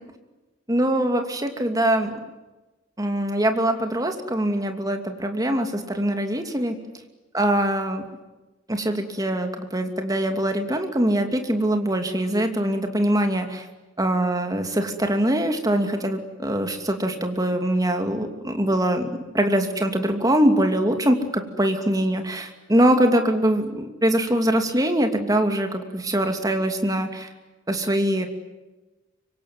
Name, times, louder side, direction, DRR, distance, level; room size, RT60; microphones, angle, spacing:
voice 1, 0.7-2.2 3.0-6.8 7.3-8.1 8.7-13.7 14.0-27.3 27.7-28.3, right 1 dB, 15° right, 5 dB, 2.7 m, -23 dB
25.0 x 24.5 x 9.6 m, 1.1 s
head